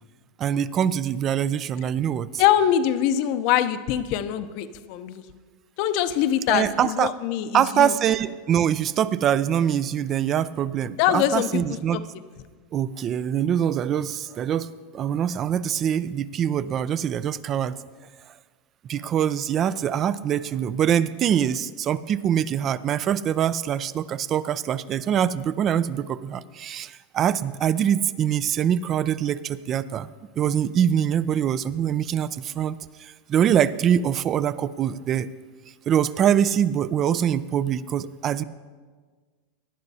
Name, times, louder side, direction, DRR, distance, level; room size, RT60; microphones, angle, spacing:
voice 1, 0.4-2.3 6.5-7.1 7.5-12.0 12.7-17.8 18.9-30.1 30.4-35.3 35.9-38.4, right 9 dB, 30° right, 16 dB, 0.3 m, -24 dB
voice 2, 2.4-5.2 5.8-7.9 11.0-11.6 11.9-12.0, left 11 dB, 55° left, 11 dB, 0.6 m, -23 dB
18.5 x 11.0 x 2.8 m, 1.5 s
supercardioid pair, 140°, 0 cm